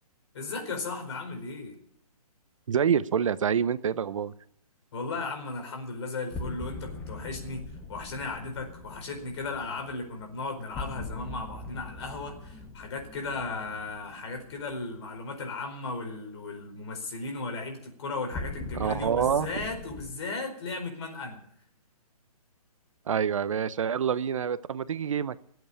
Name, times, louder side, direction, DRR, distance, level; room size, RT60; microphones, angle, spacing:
voice 1, 0.3-1.8 4.9-21.4, left 3 dB, 45° left, 5 dB, 4.6 m, -36 dB
voice 2, 2.7-4.3 18.7-19.6 23.1-25.4, right 7 dB, 55° right, 16 dB, 0.7 m, -27 dB
sound 1, 6.3-15.3 18.3-20.1, left 3 dB, 10° left, 1.0 m, -41 dB
18.5 x 8.1 x 8.6 m, 0.70 s
hypercardioid pair, 155°, 20 cm